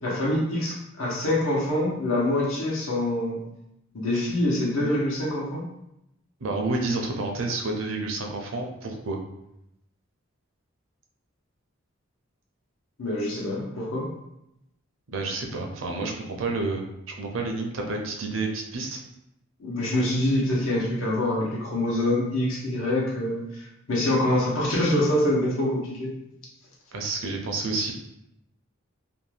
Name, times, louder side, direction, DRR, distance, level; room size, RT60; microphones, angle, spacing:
voice 1, 0.0-3.4 3.9-5.6 13.0-14.1 19.6-26.1, left 1 dB, 75° left, -4 dB, 0.9 m, -25 dB
voice 2, 6.4-9.2 15.1-19.0 26.9-27.9, right 3 dB, 70° right, 2 dB, 0.5 m, -29 dB
2.6 x 2.2 x 3.2 m, 0.83 s
head